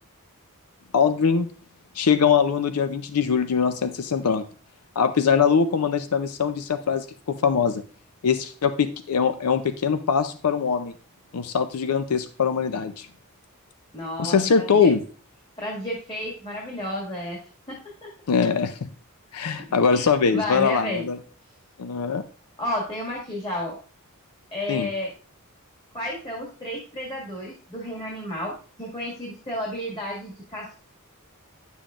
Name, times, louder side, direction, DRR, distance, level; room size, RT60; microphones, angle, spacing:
voice 1, 0.9-1.5 2.0-4.4 5.0-7.8 8.2-10.9 11.3-13.1 14.2-15.0 18.3-18.9 19.3-21.2 21.8-22.2 24.7-24.9, left 6 dB, 80° left, 11 dB, 0.5 m, -22 dB
voice 2, 13.9-14.9 15.6-17.4 17.7-18.1 19.9-21.1 22.6-23.8 24.5-25.1 25.9-28.5 28.8-30.7, left 1 dB, 25° left, -3 dB, 1.9 m, -32 dB
10.5 x 7.1 x 2.5 m, 0.40 s
head